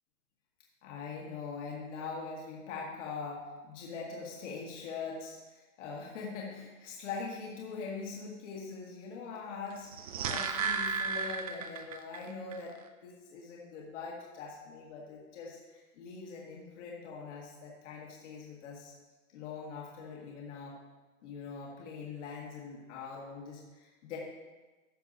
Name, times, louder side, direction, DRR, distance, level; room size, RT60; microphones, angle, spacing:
voice 1, 0.8-12.7 13.0-18.9 19.3-20.8 21.2-24.2, left 5 dB, 55° left, -3 dB, 2.0 m, -42 dB
sound 1, 9.8-12.2 12.5-12.6, right 5 dB, 30° right, 0.4 m, -34 dB
13.5 x 6.8 x 2.8 m, 1.2 s
hypercardioid pair, 140°, 44 cm